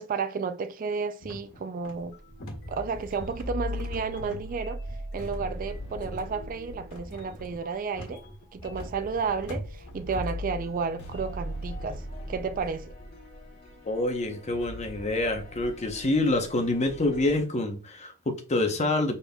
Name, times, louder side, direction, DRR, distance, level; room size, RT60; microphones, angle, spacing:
voice 1, 0.0-2.1 2.7-4.8 5.1-8.2 8.5-12.9, right 5 dB, 40° right, 0.3 m, -32 dB
sound 1, 1.2-10.4, equal, 80° left, 1.6 m, -43 dB
sound 2, 1.9-17.4, left 1 dB, 50° left, 1.4 m, -40 dB
voice 2, 13.8-19.2, left 2 dB, 30° left, 0.8 m, -27 dB
5.2 x 4.0 x 2.3 m
head